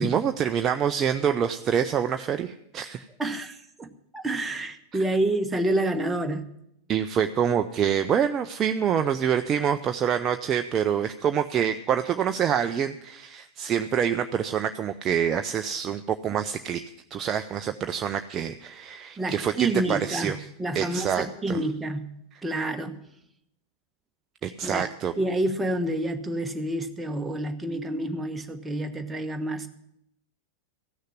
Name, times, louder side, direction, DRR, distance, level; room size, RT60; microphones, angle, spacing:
voice 1, 0.0-3.1 6.9-16.8 17.1-20.4 20.7-21.6 24.4-25.1, right 8 dB, 30° right, 7 dB, 0.5 m, -26 dB
voice 2, 3.2-6.5 19.2-22.1 22.4-23.0 24.6-24.9 25.2-29.7, right 1 dB, 10° right, 5 dB, 1.2 m, -28 dB
15.5 x 6.5 x 9.5 m, 0.76 s
figure-of-eight pair, 90°, 0 cm